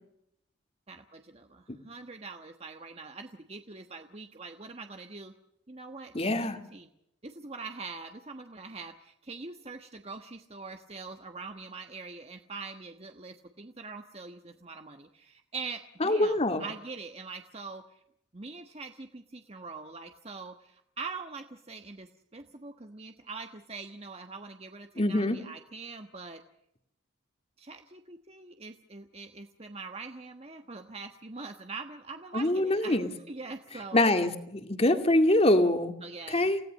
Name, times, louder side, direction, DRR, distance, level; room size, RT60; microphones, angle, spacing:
voice 1, 0.9-5.3 5.7-6.3 6.7-6.9 7.2-17.8 18.3-22.1 22.3-26.4 27.6-33.0 33.3-34.0 36.0-36.5, right 4 dB, 30° right, 5 dB, 1.3 m, -43 dB
voice 2, 6.1-6.6 16.0-16.6 25.0-25.4 32.3-33.1 33.9-35.9 36.3-36.6, left 1 dB, 30° left, 7 dB, 2.3 m, -24 dB
29.0 x 17.5 x 6.5 m, 0.79 s
head